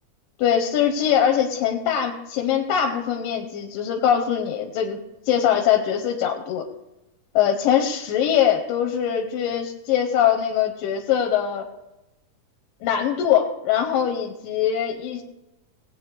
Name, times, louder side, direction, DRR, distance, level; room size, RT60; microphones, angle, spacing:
voice 1, 0.4-6.6 7.4-11.7 12.8-15.2, left 9 dB, 85° left, 2 dB, 2.5 m, -22 dB
19.0 x 8.6 x 3.3 m, 0.96 s
omnidirectional pair, 3.9 m